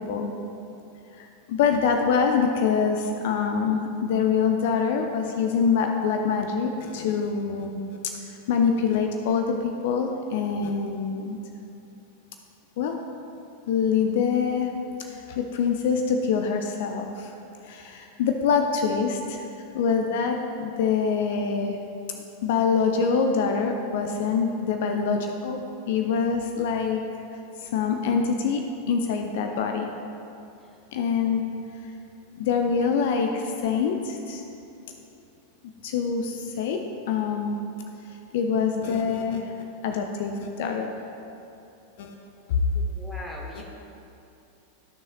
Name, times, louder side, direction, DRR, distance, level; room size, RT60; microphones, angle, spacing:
voice 1, 1.2-7.8 8.5-11.4 12.8-13.0 13.7-14.7 15.1-17.3 17.6-19.4 19.7-21.8 22.4-27.0 27.6-29.9 30.9-31.4 32.4-34.4 35.8-36.8 37.1-37.6 38.3-40.9 42.0-42.1 43.6-43.7, left 6 dB, 55° left, 4 dB, 0.5 m, -25 dB
voice 2, 42.7-43.6, equal, 5° left, -3 dB, 1.5 m, -40 dB
14.0 x 6.3 x 2.3 m, 2.8 s
figure-of-eight pair, 90°, 0 cm